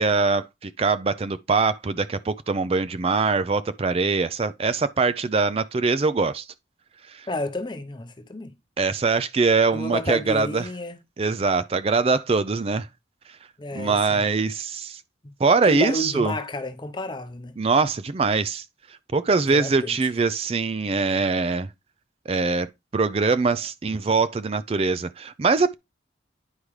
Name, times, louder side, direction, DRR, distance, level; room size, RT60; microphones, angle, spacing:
voice 1, 0.0-6.5 7.1-7.3 8.8-10.6 11.2-12.9 13.7-15.0 15.4-16.3 17.6-18.7 19.1-21.7 22.3-25.7, right 4 dB, 30° right, 0.4 m, -23 dB
voice 2, 7.3-8.5 9.7-11.0 13.6-14.2 15.2-15.3 15.6-17.5 19.5-20.1, left 1 dB, 25° left, 0.7 m, -31 dB
9.8 x 5.0 x 3.1 m
head